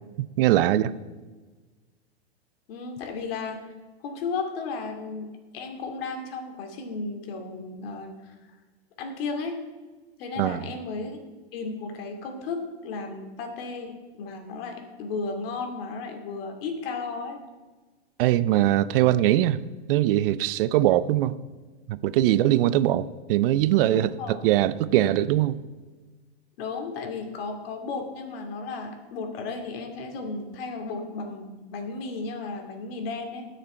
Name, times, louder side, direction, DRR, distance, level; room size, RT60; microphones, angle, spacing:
voice 1, 0.4-0.9 10.4-10.6 18.2-19.6 19.9-21.4 21.9-25.6, right 13 dB, 60° right, 16 dB, 0.7 m, -22 dB
voice 2, 2.7-3.7 4.0-8.3 9.0-9.6 10.2-11.2 11.5-17.4 23.9-24.4 26.6-33.5, left 4 dB, 60° left, 3 dB, 2.6 m, -34 dB
20.0 x 6.7 x 4.5 m, 1.3 s
hypercardioid pair, 125°, 32 cm